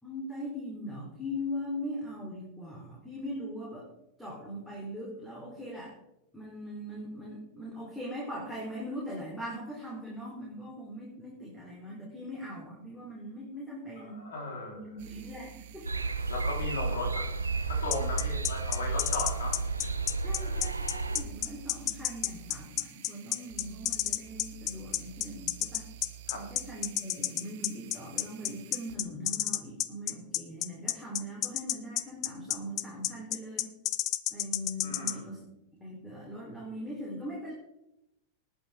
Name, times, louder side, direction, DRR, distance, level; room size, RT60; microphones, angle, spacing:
voice 1, 0.0-3.9 4.2-5.9 6.3-14.3 14.7-15.9 19.8-19.9 20.2-25.9 26.3-33.7 34.3-35.5 35.8-37.5, equal, 5° left, -5 dB, 3.8 m, -40 dB
voice 2, 14.1-14.9 16.3-17.2 17.6-19.6 20.4-20.6 26.3-26.4 34.8-35.4, left 2 dB, 60° left, 0 dB, 4.0 m, -37 dB
sound 1, 15.0-29.0, right 11 dB, 50° right, 1.2 m, -49 dB
sound 2, 15.8-21.2, right 3 dB, 80° right, 0.8 m, -32 dB
sound 3, 17.9-35.1, left 16 dB, 40° left, 0.6 m, -30 dB
19.5 x 8.1 x 3.6 m, 0.85 s
figure-of-eight pair, 90°, 0 cm